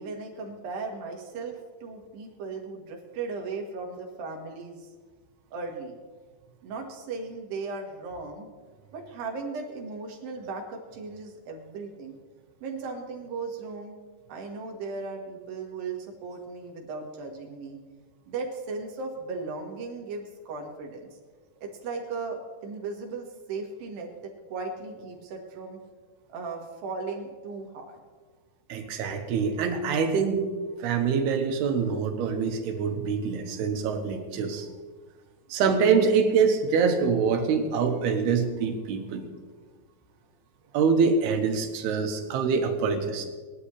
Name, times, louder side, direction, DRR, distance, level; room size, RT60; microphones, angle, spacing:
voice 1, 0.0-4.9 5.5-6.0 6.6-8.5 8.9-12.2 12.6-14.0 14.3-17.8 18.3-21.2 21.6-25.8 26.3-28.0, right 4 dB, 70° right, 0 dB, 3.4 m, -37 dB
voice 2, 28.7-30.5 30.8-34.7 35.5-39.2 40.7-43.3, right 5 dB, 90° right, 5 dB, 3.2 m, -25 dB
20.0 x 11.5 x 3.2 m, 1.4 s
omnidirectional pair, 4.5 m